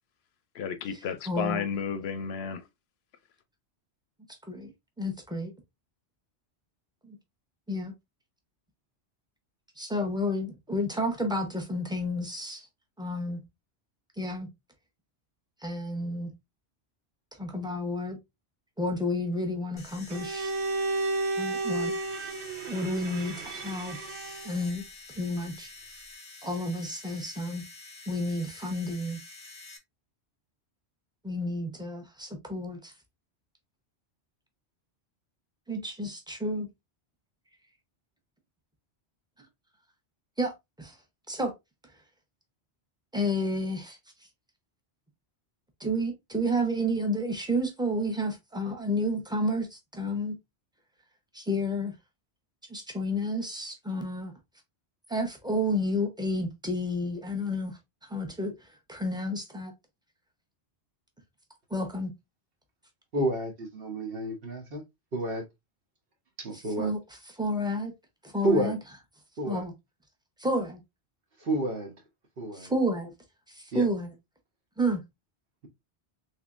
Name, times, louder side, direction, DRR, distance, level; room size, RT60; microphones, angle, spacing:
voice 1, 0.5-2.6, left 7 dB, 70° left, 0.8 m, -32 dB
voice 2, 1.3-1.7 4.5-4.7 5.0-5.5 7.1-7.2 7.7-7.9 9.8-12.6 13.0-13.4 14.2-14.5 15.6-16.3 17.4-18.2 18.8-20.5 21.4-21.9 22.7-24.0 24.4-24.8 25.2-25.7 26.4-27.6 28.1-29.2 31.2-32.9 35.7-36.7 40.4-40.5 40.8-40.9 41.3-41.5 43.1-44.0 45.8-50.3 51.3-51.9 52.7-54.3 55.1-57.7 58.1-58.5 58.9-59.7 61.7-62.1 66.5-67.0 67.4-67.9 68.2-68.8 69.5-69.7 70.4-70.8 72.5-73.1 73.5-74.1 74.8-75.0, equal, 5° right, 0.7 m, -30 dB
sound 1, 19.8-29.8, left 3 dB, 30° left, 0.9 m, -47 dB
Bowed string instrument, 20.1-24.6, right 2 dB, 75° right, 1.0 m, -32 dB
voice 3, 63.1-64.8 65.1-65.4 66.4-66.9 68.4-68.8 69.4-69.6 71.4-71.9 72.4-72.7 73.7-73.9, right 1 dB, 60° right, 1.2 m, -29 dB
3.5 x 3.4 x 2.5 m
omnidirectional pair, 1.1 m